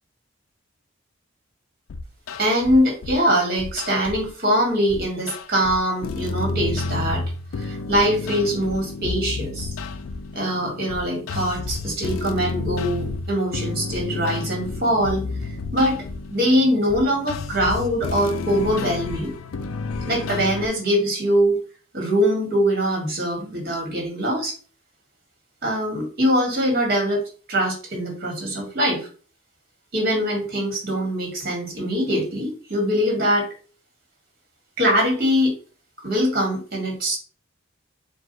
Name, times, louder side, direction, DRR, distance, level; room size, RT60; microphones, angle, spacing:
sound 1, 1.9-3.2 3.6-4.3 4.9-20.7, left 3 dB, 85° left, 0.4 m, -31 dB
voice 1, 2.4-7.2 7.6-9.7 10.3-15.2 15.7-16.0 16.3-19.3 20.1-21.6 21.9-24.6 25.6-27.2 27.5-29.1 29.9-33.5 34.8-35.5 36.0-37.2, equal, 50° right, 0 dB, 1.8 m, -22 dB
4.7 x 2.4 x 4.0 m, 0.39 s
head